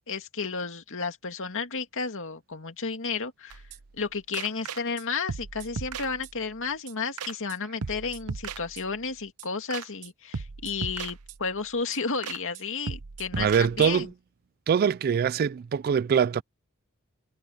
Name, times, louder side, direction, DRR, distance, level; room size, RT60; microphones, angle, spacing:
voice 1, 0.0-3.6 4.0-13.5 13.8-14.1, left 4 dB, 60° left, 2.4 m, -32 dB
sound 1, 3.5-4.0 4.3-5.0 5.3-6.6 6.9-7.0 7.2-7.6 7.8-9.1 9.4-9.5 9.7-10.1 10.3-11.6 11.9-12.0 12.2-12.6 12.9-14.1, right 5 dB, 90° right, 0.8 m, -37 dB
voice 2, 13.4-14.1 14.7-16.4, right 7 dB, 45° right, 0.3 m, -23 dB
head